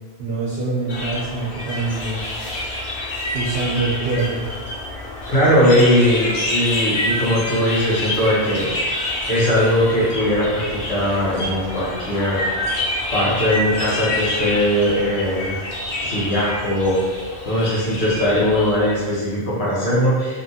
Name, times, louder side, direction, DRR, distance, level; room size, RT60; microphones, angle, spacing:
voice 1, 0.2-2.2 3.3-4.5, right 3 dB, 65° right, -7 dB, 0.9 m, -24 dB
sound 1, 0.9-19.2, left 1 dB, 55° left, 0.7 m, -27 dB
voice 2, 5.3-8.6 9.3-12.5 13.1-15.6 16.0-17.2 17.4-20.4, equal, 75° left, -9 dB, 1.3 m, -19 dB
2.9 x 2.5 x 2.7 m, 1.4 s
omnidirectional pair, 1.1 m